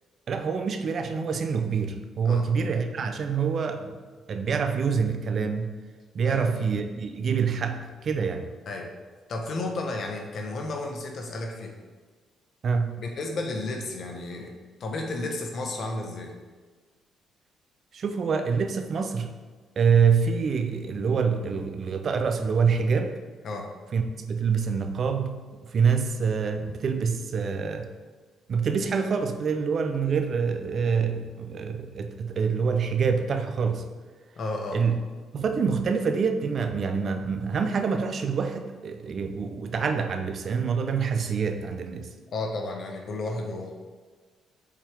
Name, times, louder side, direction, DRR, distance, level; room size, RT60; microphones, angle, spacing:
voice 1, 0.3-4.0 4.3-5.8 6.1-8.5 12.6-13.0 17.9-19.3 19.8-23.1 23.9-25.4 25.7-27.9 28.5-33.8 34.7-35.0 35.3-42.1, right 6 dB, 55° right, 7 dB, 0.6 m, -26 dB
voice 2, 6.2-6.7 8.7-8.9 9.3-11.8 13.0-16.3 23.4-23.7 34.4-34.8 42.3-43.7, left 2 dB, 55° left, 2 dB, 1.1 m, -33 dB
7.2 x 4.4 x 3.6 m, 1.4 s
cardioid pair, 90°, 0 cm